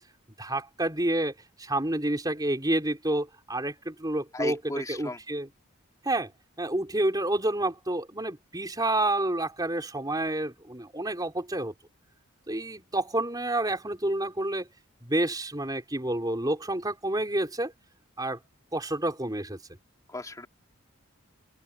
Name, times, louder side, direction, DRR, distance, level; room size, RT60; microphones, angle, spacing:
voice 1, 0.4-1.3 1.6-4.6 4.9-5.5 6.0-6.3 6.6-11.7 12.5-14.7 15.0-17.7 18.2-18.4 18.7-19.6, right 1 dB, 20° right, 4.4 m, -29 dB
voice 2, 4.3-5.2 20.1-20.5, left 2 dB, 15° left, 3.3 m, -35 dB
open air
head